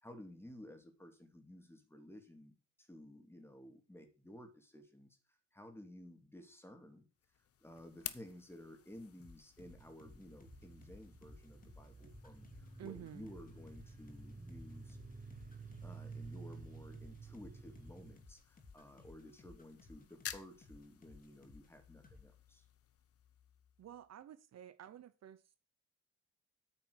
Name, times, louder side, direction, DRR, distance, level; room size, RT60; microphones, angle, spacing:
voice 1, 0.0-5.2 5.5-7.1 7.6-15.0 15.8-22.6, left 1 dB, 10° left, 6 dB, 2.6 m, -55 dB
sound 1, 7.2-24.1, left 9 dB, 50° left, 0.9 m, -55 dB
sound 2, 9.2-21.8 22.0-22.2, left 4 dB, 30° left, 2.8 m, -59 dB
sound 3, 9.6-18.2, right 4 dB, 25° right, 1.5 m, -52 dB
voice 2, 12.8-13.3 23.8-25.6, right 10 dB, 60° right, 13 dB, 0.9 m, -51 dB
9.0 x 6.0 x 6.4 m, 0.34 s
cardioid pair, 90°, 30 cm